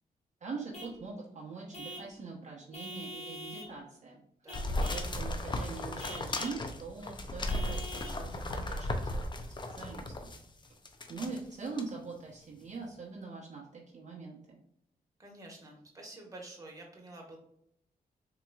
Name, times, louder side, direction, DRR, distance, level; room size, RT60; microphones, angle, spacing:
voice 1, 0.4-4.2 4.7-9.2 9.7-10.4 10.6-10.7 11.1-14.6, right 4 dB, 50° right, -4 dB, 0.9 m, -43 dB
Vehicle horn car horn honking / Truck, 0.7-1.0 1.7-2.1 2.7-3.7 4.5-5.1 6.0-6.6 7.5-8.2, left 1 dB, 45° left, 1.3 m, -44 dB
sound 1, 4.5-10.4 10.9-11.4 11.8-11.9, left 1 dB, 30° left, 0.5 m, -35 dB
voice 2, 15.2-17.4, right 2 dB, 20° right, -1 dB, 1.3 m, -49 dB
3.9 x 2.9 x 2.3 m, 0.73 s
cardioid pair, 70°, 16 cm